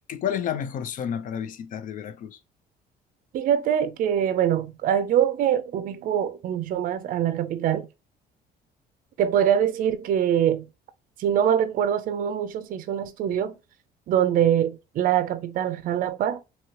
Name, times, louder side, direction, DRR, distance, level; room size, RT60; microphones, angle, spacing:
voice 1, 0.1-2.4, left 9 dB, 50° left, 0.4 m, -30 dB
voice 2, 3.3-7.9 9.2-10.7 11.2-13.6 14.1-16.4, right 9 dB, 55° right, 0.4 m, -24 dB
2.9 x 2.8 x 2.8 m
cardioid pair, 110°, 17 cm